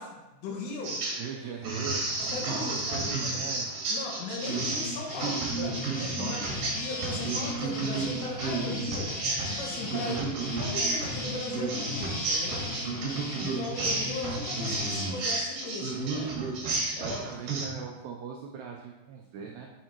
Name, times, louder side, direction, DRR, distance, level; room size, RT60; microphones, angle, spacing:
voice 1, 0.0-1.0 2.2-3.3 3.9-6.4 6.7-9.2 9.5-10.1 10.6-12.6 13.4-16.4 17.0-17.2 17.6-17.7, left 3 dB, 80° left, -1 dB, 4.0 m, -38 dB
sound 1, 0.8-1.3 1.6-17.7, right 3 dB, 60° right, 2.7 m, -32 dB
voice 2, 1.2-3.7 6.2-6.6 9.9-10.6 12.5-13.5 17.0-19.7, right 6 dB, 90° right, 0 dB, 2.3 m, -41 dB
sound 2, 4.4-15.1, left 1 dB, 40° left, 1.7 m, -37 dB
9.0 x 7.1 x 3.0 m, 1.0 s
omnidirectional pair, 5.7 m